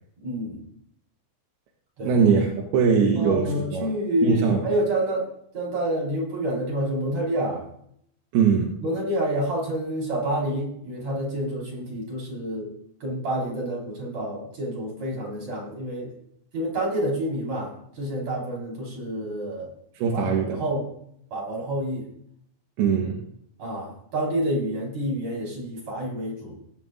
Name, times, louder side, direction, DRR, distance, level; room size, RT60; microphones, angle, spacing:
voice 1, 0.2-0.6 2.0-2.1 3.2-5.2 5.5-7.6 8.8-12.7 13.0-16.1 16.5-19.7 20.1-20.2 20.5-20.9 21.3-22.1 23.6-26.6, right 1 dB, 45° right, -3 dB, 5.8 m, -28 dB
voice 2, 2.0-3.9 4.2-4.6 8.3-8.7 20.0-20.6 22.8-23.2, right 6 dB, 80° right, 1 dB, 3.2 m, -21 dB
18.5 x 11.0 x 2.6 m, 0.71 s
omnidirectional pair, 4.5 m